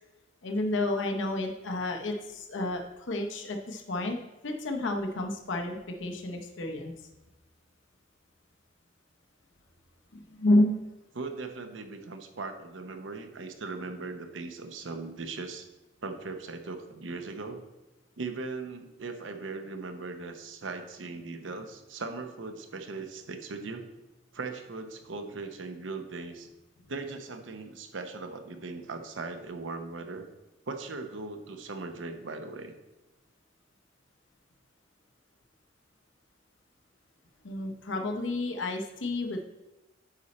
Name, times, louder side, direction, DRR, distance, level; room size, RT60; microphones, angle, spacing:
voice 1, 0.4-4.2 4.4-6.9 10.1-10.8 37.4-39.4, left 1 dB, 75° left, 3 dB, 0.8 m, -30 dB
voice 2, 11.1-15.7 16.0-17.6 18.2-23.9 24.3-26.5 26.9-30.3 30.7-32.7, right 3 dB, 80° right, 7 dB, 0.8 m, -39 dB
9.9 x 4.3 x 4.2 m, 1.0 s
head